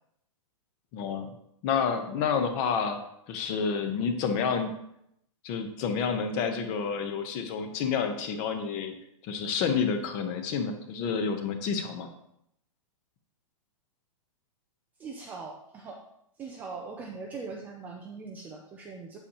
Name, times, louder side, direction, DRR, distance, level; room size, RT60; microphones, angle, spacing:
voice 1, 0.9-1.3 1.6-3.0 3.3-4.7 5.4-8.9 9.2-12.1, left 6 dB, 25° left, 7 dB, 0.9 m, -29 dB
voice 2, 15.0-16.0 16.4-19.2, right 4 dB, 10° right, 1 dB, 0.4 m, -41 dB
8.2 x 8.2 x 2.9 m, 0.76 s
hypercardioid pair, 165°, 17 cm